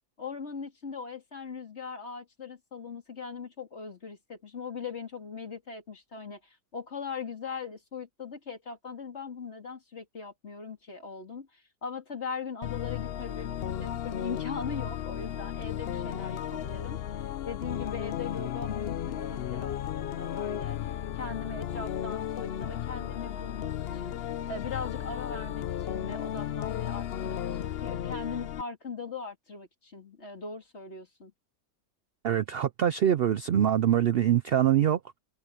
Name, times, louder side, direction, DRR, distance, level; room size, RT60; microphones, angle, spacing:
voice 1, 0.2-17.0 17.4-24.2 24.5-31.3, left 5 dB, 45° left, 2.9 m, -40 dB
sound 1, 12.6-28.6, left 10 dB, 60° left, 0.6 m, -34 dB
voice 2, 32.2-35.2, right 10 dB, 80° right, 0.5 m, -24 dB
open air
omnidirectional pair, 1.6 m